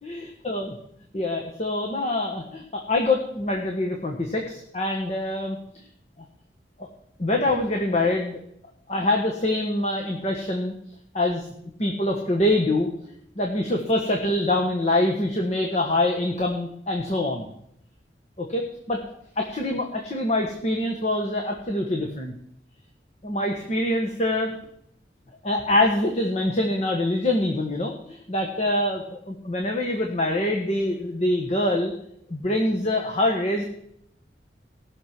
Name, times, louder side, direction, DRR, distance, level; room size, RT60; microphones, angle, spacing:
voice 1, 0.0-0.7 1.1-5.6 6.8-6.9 7.2-8.4 8.9-10.7 11.1-11.5 11.8-12.9 13.4-17.5 18.4-19.0 19.4-22.3 23.2-24.5 25.4-31.9 32.3-33.6, left 1 dB, 40° left, 1 dB, 1.4 m, -25 dB
18.0 x 6.6 x 6.1 m, 0.72 s
head